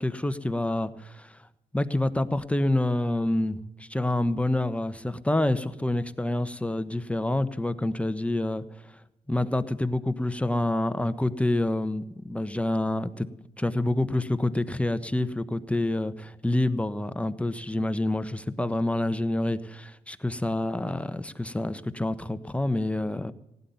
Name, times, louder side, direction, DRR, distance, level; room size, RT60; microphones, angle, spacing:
voice 1, 0.0-1.4 1.7-8.6 9.3-13.3 13.6-23.3, left 1 dB, 5° left, 12 dB, 1.1 m, -27 dB
16.5 x 9.5 x 7.0 m, 0.90 s
hypercardioid pair, 45°, 18 cm